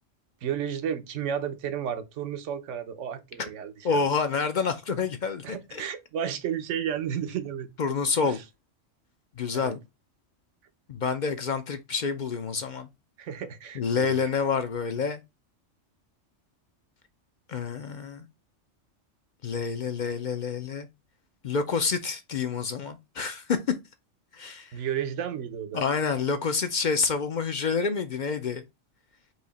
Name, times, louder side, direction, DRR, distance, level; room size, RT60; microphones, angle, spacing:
voice 1, 0.4-4.0 5.4-7.7 8.2-8.4 9.5-9.7 13.2-14.2 24.7-25.8, right 9 dB, 75° right, 1.1 m, -32 dB
voice 2, 3.8-5.9 7.8-8.4 9.4-9.8 10.9-12.9 13.7-15.2 17.5-18.3 19.4-20.9 21.4-23.6 24.3-24.8 25.7-28.6, left 5 dB, 55° left, 0.5 m, -28 dB
4.8 x 2.8 x 4.0 m
omnidirectional pair, 1.3 m